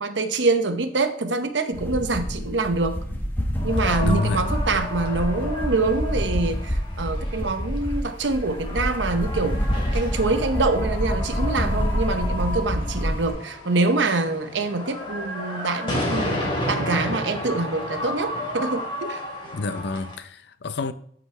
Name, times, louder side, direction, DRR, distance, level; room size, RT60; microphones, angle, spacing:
voice 1, 0.0-3.0 3.6-9.6 9.9-19.2, right 3 dB, 90° right, 0.9 m, -25 dB
sound 1, 1.7-13.3, equal, 10° left, 1.2 m, -27 dB
sound 2, 3.6-20.1, left 1 dB, 30° left, 2.6 m, -32 dB
voice 2, 4.0-4.5 19.5-20.9, left 3 dB, 65° left, 0.5 m, -27 dB
13.5 x 5.2 x 3.3 m
head